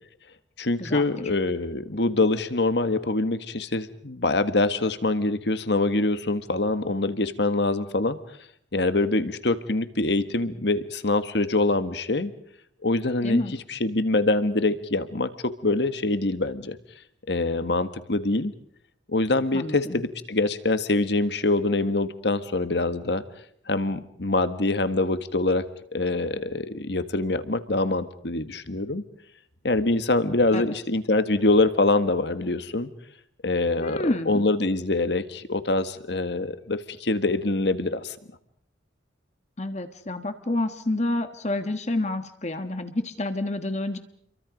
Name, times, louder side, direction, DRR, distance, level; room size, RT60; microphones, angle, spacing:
voice 1, 0.6-8.2 8.7-12.3 12.8-13.4 13.7-16.8 17.3-18.5 19.1-23.2 23.7-25.6 25.9-29.0 29.6-32.9 33.4-38.1, left 2 dB, 65° left, 11 dB, 1.6 m, -24 dB
voice 2, 13.2-13.5 19.5-20.0 30.5-30.7 33.8-34.5 39.6-44.0, left 1 dB, 40° left, 8 dB, 1.5 m, -28 dB
30.0 x 23.5 x 5.3 m, 0.66 s
head